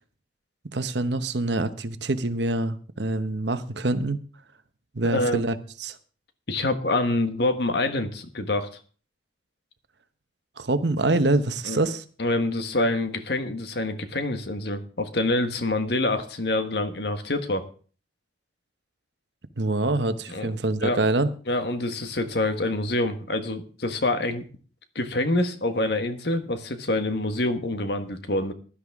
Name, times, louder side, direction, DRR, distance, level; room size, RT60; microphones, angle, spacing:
voice 1, 0.7-4.2 4.9-6.0 10.6-12.0 19.6-21.3, right 2 dB, 75° right, 1.0 m, -25 dB
voice 2, 5.0-5.4 6.5-8.7 11.6-11.8 12.2-17.7 20.3-21.0 21.5-24.4 24.9-28.5, left 2 dB, 65° left, 1.4 m, -26 dB
16.0 x 11.5 x 3.6 m
head